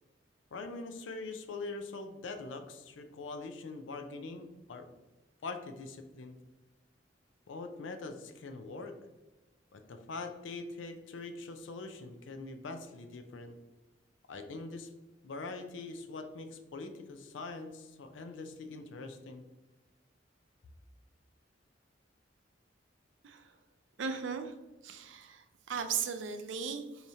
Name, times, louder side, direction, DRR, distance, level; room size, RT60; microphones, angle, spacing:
voice 1, 0.5-4.9 5.4-6.4 7.5-8.9 9.7-13.6 14.3-14.9 15.2-19.4, left 3 dB, 80° left, 7 dB, 0.5 m, -43 dB
voice 2, 23.2-23.5 24.0-24.5 24.8-27.1, right 6 dB, 80° right, 8 dB, 0.5 m, -37 dB
4.8 x 2.8 x 2.7 m, 1.1 s
head